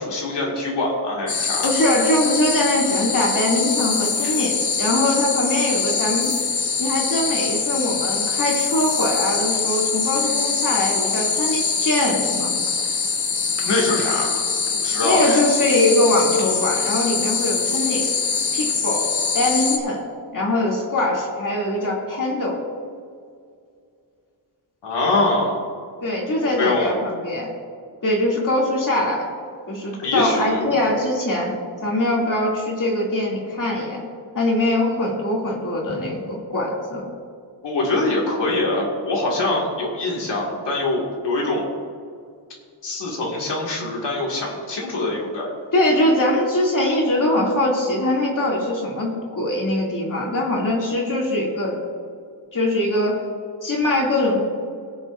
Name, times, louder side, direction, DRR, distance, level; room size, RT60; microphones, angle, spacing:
voice 1, 0.0-1.7 13.7-14.4 14.8-15.4 24.8-25.6 26.4-27.0 30.0-30.6 37.6-41.6 42.8-45.5, left 2 dB, 90° left, -3 dB, 2.2 m, -23 dB
sound 1, 1.3-19.8, left 5 dB, 65° left, 1.1 m, -23 dB
voice 2, 1.6-6.3 6.8-12.5 15.0-18.1 18.5-19.0 19.3-20.0 20.3-22.6 26.0-27.5 28.0-29.3 29.7-34.0 34.3-37.0 45.7-51.8 52.5-53.1 53.6-54.4, left 1 dB, 50° left, -3 dB, 2.6 m, -22 dB
21.5 x 7.4 x 2.6 m, 2.2 s
wide cardioid pair, 150°, 41 cm